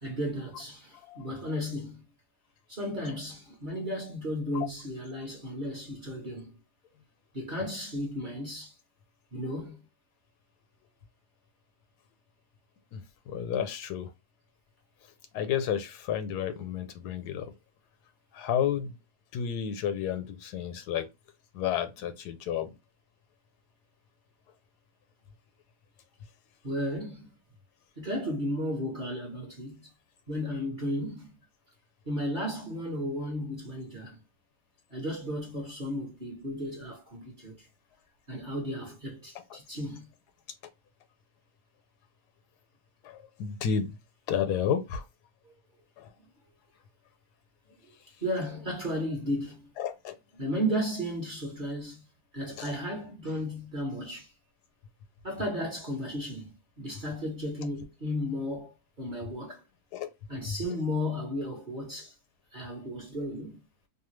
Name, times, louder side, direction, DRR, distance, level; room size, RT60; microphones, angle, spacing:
voice 1, 0.0-2.0 2.7-6.5 7.3-8.7 9.3-9.8 26.6-27.3 28.0-29.8 30.3-31.3 32.1-34.2 34.9-37.7 38.3-40.1 48.2-49.6 50.3-52.0 52.3-54.3 55.2-58.7 59.0-59.6 60.3-62.1 62.5-63.6, equal, 40° right, 0.8 m, -34 dB
voice 2, 12.9-14.1 15.3-17.5 18.3-18.9 19.3-21.1 21.5-22.7 43.0-43.9 44.3-45.0 46.0-46.1 49.8-50.1 52.6-52.7 59.9-60.1 60.5-60.6, left 8 dB, 90° left, 1.2 m, -31 dB
2.8 x 2.2 x 3.1 m
omnidirectional pair, 1.7 m